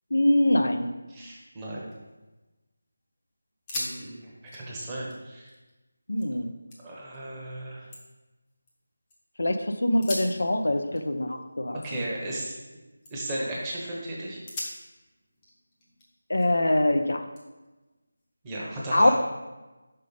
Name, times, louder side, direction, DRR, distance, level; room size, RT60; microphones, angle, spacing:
voice 1, 0.1-0.9 6.1-6.5 9.4-11.8 16.3-17.2 18.9-19.1, left 1 dB, 75° left, 7 dB, 0.7 m, -23 dB
voice 2, 1.1-1.9 3.7-5.5 6.8-7.9 11.8-12.6 13.1-14.4 18.4-19.1, right 1 dB, 10° right, -6 dB, 1.1 m, -35 dB
sound 1, 1.9-2.7 3.0-3.1 3.5-4.0 4.3-6.3 6.7-7.2 7.6-9.2 9.9-12.7 13.0-13.4 13.9-14.0 14.5-16.7 17.4-18.5, left 1 dB, 15° left, 1.0 m, -42 dB
5.6 x 5.2 x 5.1 m, 1.1 s
figure-of-eight pair, 170°, 0 cm